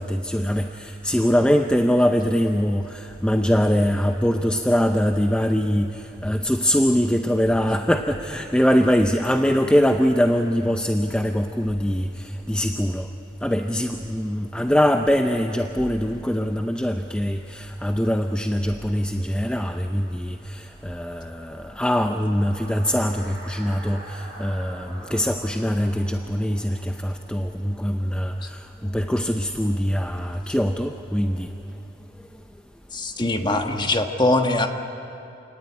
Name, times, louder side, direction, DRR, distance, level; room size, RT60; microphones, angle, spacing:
voice 1, 0.0-13.1 13.4-31.5, equal, 5° left, 5 dB, 0.6 m, -23 dB
sound 1, 19.2-27.9, right 1 dB, 15° right, 7.2 m, -46 dB
voice 2, 32.9-34.7, left 2 dB, 25° left, 5 dB, 1.5 m, -22 dB
28.0 x 18.0 x 9.9 m, 2.9 s
head